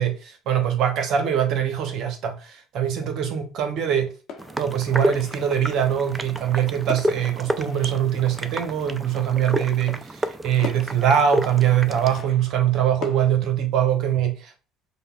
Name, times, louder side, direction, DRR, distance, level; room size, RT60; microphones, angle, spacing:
voice 1, 0.0-4.1 4.6-14.5, right 9 dB, 60° right, 0.8 m, -23 dB
sound 1, 4.3-5.8 6.9-8.8 10.0-10.1 10.6-13.3, left 6 dB, 55° left, 0.9 m, -40 dB
sound 2, 4.4-12.2, right 1 dB, 20° right, 0.4 m, -30 dB
5.1 x 2.2 x 2.3 m
hypercardioid pair, 60°, 0 cm